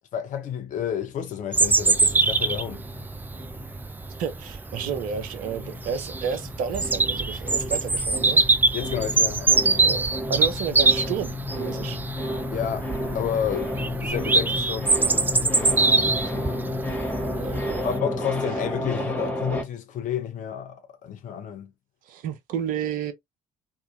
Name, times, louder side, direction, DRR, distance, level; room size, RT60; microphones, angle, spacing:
voice 1, 0.1-2.8 8.7-9.9 12.5-16.5 17.8-21.7, left 9 dB, 50° left, 0.7 m, -31 dB
Bird vocalization bird call bird song, 1.5-18.0, right 3 dB, 10° right, 0.3 m, -24 dB
sound 1, 1.9-4.5 4.8-19.6, left 1 dB, 10° left, 1.0 m, -32 dB
voice 2, 4.2-8.4 9.8-12.0 17.3-17.9 22.1-23.1, right 8 dB, 55° right, 0.6 m, -31 dB
2.7 x 2.4 x 2.4 m
figure-of-eight pair, 50°, 17 cm